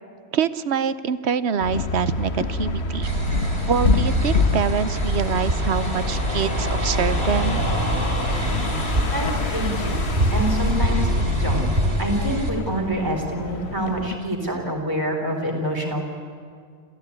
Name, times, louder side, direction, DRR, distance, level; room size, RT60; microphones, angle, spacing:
voice 1, 0.3-3.1 3.7-7.6, right 7 dB, 65° right, 14 dB, 1.0 m, -25 dB
sound 1, 1.6-14.1, left 4 dB, 65° left, 1.4 m, -28 dB
sound 2, 3.0-12.5, right 1 dB, 50° right, 3.6 m, -24 dB
voice 2, 9.1-10.0 10.3-11.7 12.0-16.0, right 1 dB, 15° right, 0 dB, 4.1 m, -26 dB
28.0 x 15.0 x 9.7 m, 2.1 s
omnidirectional pair, 1.2 m